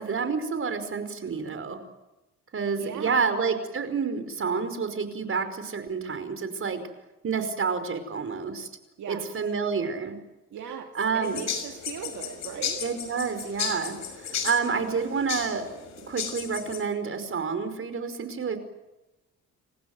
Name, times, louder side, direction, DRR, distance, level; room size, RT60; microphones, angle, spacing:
voice 1, 0.0-1.8 2.5-6.8 7.2-8.7 9.1-10.2 11.0-11.4 12.8-15.6 16.1-18.6, right 5 dB, 45° right, 9 dB, 5.1 m, -29 dB
voice 2, 2.7-3.2 9.0-9.3 10.5-12.8, right 8 dB, 70° right, 3 dB, 2.6 m, -38 dB
sound 1, 11.2-16.8, left 7 dB, 65° left, 6.4 m, -34 dB
29.0 x 15.5 x 9.3 m, 1.0 s
cardioid pair, 90°, 30 cm